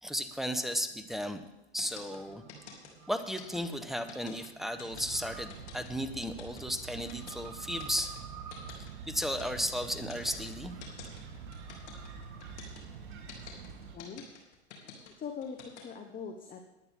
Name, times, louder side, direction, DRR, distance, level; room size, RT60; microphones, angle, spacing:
voice 1, 0.0-1.4 1.7-2.4 3.1-8.2 9.1-10.7, equal, ahead, 9 dB, 1.0 m, -34 dB
sound 1, 1.8-15.8, left 8 dB, 75° left, 3.3 m, -48 dB
sound 2, 2.1-12.5, right 7 dB, 45° right, 1.8 m, -54 dB
sound 3, 4.9-14.0, right 6 dB, 65° right, 3.1 m, -46 dB
voice 2, 13.5-14.2 14.8-16.7, left 6 dB, 25° left, 4 dB, 1.2 m, -44 dB
20.0 x 9.2 x 3.7 m, 0.96 s
hypercardioid pair, 100°, 34 cm